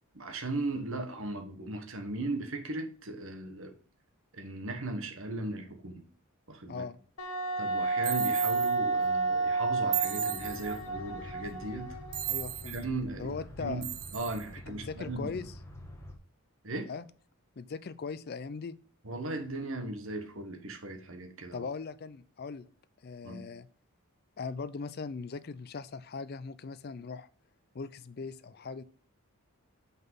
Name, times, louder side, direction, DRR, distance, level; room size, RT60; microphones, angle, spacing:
voice 1, 0.1-3.7 4.3-6.0 6.5-6.8 7.6-12.0 12.7-13.9 14.1-15.5 16.6-16.9 19.0-21.7 23.2-23.5, right 2 dB, 60° right, 5 dB, 1.2 m, -37 dB
voice 2, 6.7-7.0 12.3-12.8 13.2-13.8 14.7-15.5 16.9-17.1 17.6-18.7 21.5-22.7 23.0-23.7 24.4-27.3 27.7-28.8, left 4 dB, 45° left, 15 dB, 0.4 m, -39 dB
Wind instrument woodwind instrument, 7.2-12.6, right 3 dB, 75° left, 1.3 m, -31 dB
sound 1, 8.0-8.7 9.9-10.8 12.1-12.8 13.8-14.4, right 14 dB, 80° right, 0.7 m, -36 dB
sound 2, 10.3-16.1, left 1 dB, 10° left, 1.2 m, -47 dB
5.9 x 5.5 x 5.4 m, 0.43 s
head